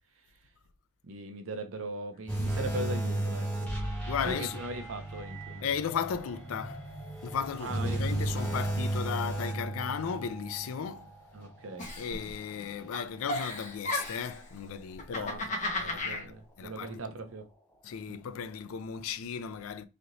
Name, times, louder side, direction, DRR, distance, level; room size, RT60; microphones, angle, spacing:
voice 1, 1.0-3.7 4.2-5.7 7.6-8.0 11.3-11.9 15.2-15.4 15.8-17.5 18.1-18.3, right 2 dB, 65° right, 0.7 m, -39 dB
sound 1, 2.3-13.7 14.1-14.3 14.9-15.0, right 1 dB, 5° left, 0.9 m, -35 dB
voice 2, 4.1-4.6 5.6-6.8 7.2-11.1 12.0-16.9 17.8-19.9, left 7 dB, 75° left, 0.4 m, -35 dB
Giggle, 11.8-12.6 12.9-14.4 14.9-16.2, left 2 dB, 35° left, 0.9 m, -34 dB
3.1 x 2.8 x 2.6 m
head